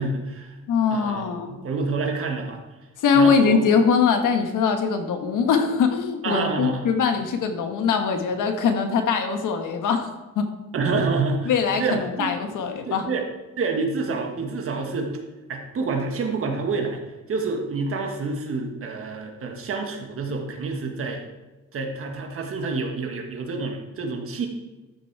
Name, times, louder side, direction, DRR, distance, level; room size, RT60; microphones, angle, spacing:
voice 1, 0.0-0.6 0.9-2.6 3.1-3.7 6.2-6.9 10.7-11.5 11.8-12.3 12.9-13.2 13.6-15.2 15.5-17.0 17.3-21.2 21.7-24.5, right 4 dB, 45° right, 3 dB, 1.6 m, -28 dB
voice 2, 0.7-1.6 3.0-10.1 10.3-10.5 11.4-13.1, left 6 dB, 75° left, 6 dB, 1.5 m, -22 dB
13.0 x 6.2 x 4.7 m, 1.1 s
cardioid pair, 170°, 31 cm